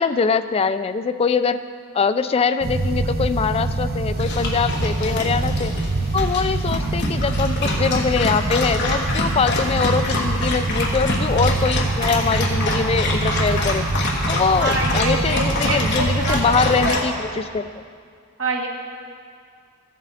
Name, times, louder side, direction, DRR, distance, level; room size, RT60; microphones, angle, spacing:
voice 1, 0.0-1.6 1.9-5.7 6.1-13.8 14.3-17.8, left 5 dB, 30° left, 11 dB, 0.3 m, -23 dB
sound 1, 2.6-16.9, right 2 dB, 45° right, 0.8 m, -24 dB
Dog, 4.2-17.1, left 2 dB, 55° left, 1.3 m, -27 dB
voice 2, 14.5-17.0 18.4-18.7, right 2 dB, 70° right, -1 dB, 1.5 m, -26 dB
15.0 x 7.2 x 4.1 m, 2.2 s
head